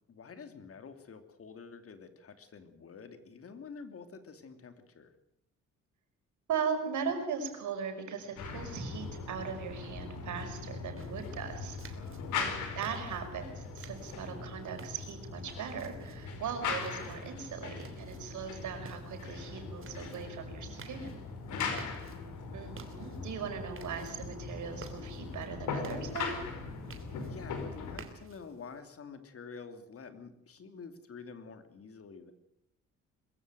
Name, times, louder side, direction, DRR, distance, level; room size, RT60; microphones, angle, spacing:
voice 1, 0.1-5.1 11.9-12.6 21.5-22.0 27.2-32.3, left 5 dB, 50° left, 8 dB, 2.9 m, -48 dB
voice 2, 6.5-12.0 12.3-21.1 22.5-26.4, right 6 dB, 75° right, 5 dB, 5.5 m, -39 dB
sound 1, 8.4-28.0, left 5 dB, 80° left, 4.9 m, -40 dB
sound 2, 11.0-28.8, right 5 dB, 45° right, 3.2 m, -55 dB
22.5 x 14.5 x 9.2 m, 0.80 s
cardioid pair, 90°, 30 cm